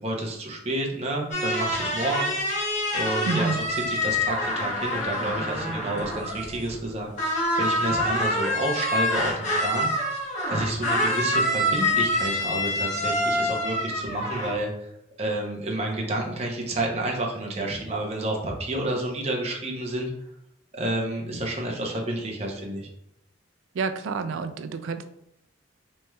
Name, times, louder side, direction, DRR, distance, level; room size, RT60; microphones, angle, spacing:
voice 1, 0.0-2.3 2.9-3.5 3.9-10.2 10.5-14.9 15.2-20.1 20.7-22.9, right 1 dB, 30° right, 0 dB, 0.7 m, -30 dB
sound 1, 1.3-6.9 7.2-14.6, left 1 dB, 35° left, 0.8 m, -26 dB
voice 2, 3.3-3.6 23.7-25.0, right 4 dB, 80° right, 9 dB, 0.3 m, -28 dB
4.2 x 3.2 x 2.3 m, 0.78 s
head